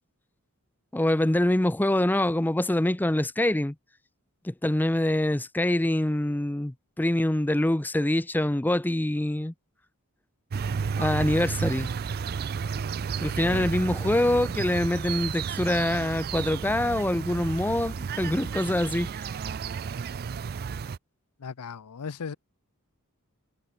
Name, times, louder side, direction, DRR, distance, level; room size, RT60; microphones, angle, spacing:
voice 1, 0.9-3.7 4.4-9.5 11.0-11.9 13.2-19.1, left 1 dB, 10° left, 0.6 m, -25 dB
sound 1, 10.5-21.0, right 6 dB, 45° right, 0.4 m, -32 dB
voice 2, 21.4-22.4, left 6 dB, 85° left, 0.6 m, -37 dB
head